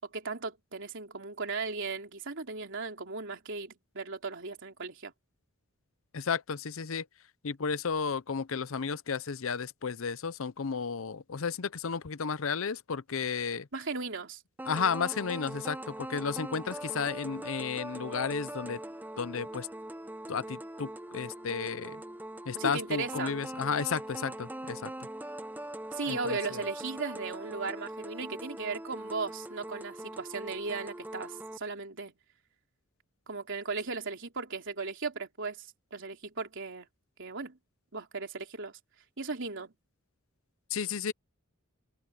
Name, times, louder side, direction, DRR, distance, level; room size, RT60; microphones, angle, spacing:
voice 1, 0.1-5.1 13.7-14.4 22.5-23.4 25.9-32.1 33.3-36.9 37.2-37.6 37.9-38.8 39.2-39.7, right 4 dB, 60° right, 3.5 m, -37 dB
voice 2, 6.1-7.1 7.4-13.7 14.7-18.8 19.2-19.7 20.3-22.0 22.5-25.1 26.1-26.6 40.7-41.1, left 6 dB, 70° left, 0.6 m, -33 dB
sound 1, 14.6-31.6, right 1 dB, 10° right, 0.6 m, -42 dB
head